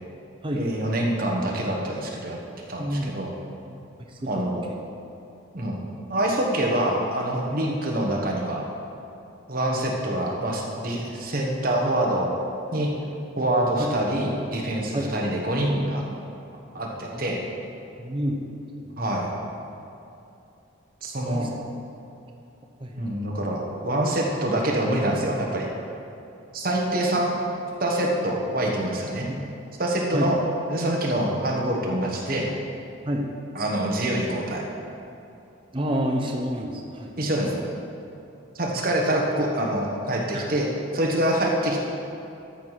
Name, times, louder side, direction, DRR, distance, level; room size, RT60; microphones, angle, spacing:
voice 1, 0.5-2.4 2.7-3.3 4.3-4.7 5.5-8.6 9.5-12.3 12.7-12.9 13.4-16.0 16.7-17.4 19.0-19.3 21.0-21.5 23.0-25.7 26.5-27.3 27.8-29.3 29.8-30.4 30.7-32.5 33.5-34.6 37.2-37.6 38.5-40.7 40.9-41.8, right 1 dB, 45° right, -1 dB, 1.3 m, -25 dB
voice 2, 2.8-3.1 3.6-3.7 7.6-7.7 14.9-15.1 17.1-17.2 18.0-18.4 18.8-18.9 21.2-21.5 22.8-23.0 29.3-29.4 30.1-30.3 33.1-33.3 35.7-37.2 40.3-40.4, equal, 25° right, 0 dB, 0.8 m, -28 dB
13.0 x 4.7 x 5.8 m, 2.8 s
head